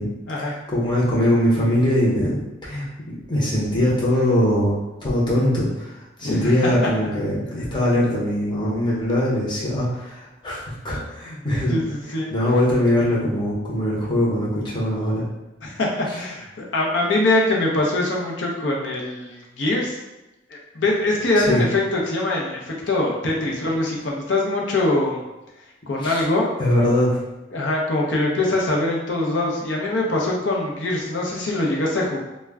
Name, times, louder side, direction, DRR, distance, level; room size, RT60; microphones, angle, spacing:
voice 1, 0.4-5.9 6.2-11.8 12.3-15.2 21.5-21.6 26.0-26.2 26.6-27.2, left 1 dB, 25° left, -6 dB, 0.7 m, -21 dB
voice 2, 6.2-6.5 11.7-12.3 15.6-20.0 20.7-25.2 25.9-26.5 27.5-32.2, left 2 dB, 70° left, -2 dB, 0.6 m, -23 dB
2.2 x 2.1 x 3.5 m, 1.0 s
head